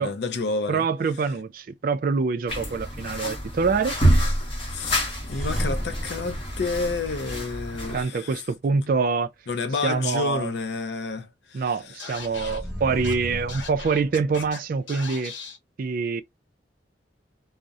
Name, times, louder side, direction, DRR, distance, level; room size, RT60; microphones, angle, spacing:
voice 1, 0.0-0.9 4.7-8.4 9.5-12.4, left 3 dB, 60° left, 0.4 m, -30 dB
voice 2, 0.7-4.0 7.9-9.3 9.8-10.5 11.5-15.3 15.8-16.2, right 4 dB, 50° right, 0.3 m, -25 dB
sound 1, 2.5-8.0, equal, 30° left, 0.8 m, -27 dB
sound 2, 5.2-7.7 12.2-14.5, equal, ahead, 0.7 m, -34 dB
Scratching (performance technique), 12.0-12.6 13.0-13.1 13.5-14.6 14.9-15.6, left 5 dB, 80° left, 0.8 m, -38 dB
2.7 x 2.0 x 2.3 m
head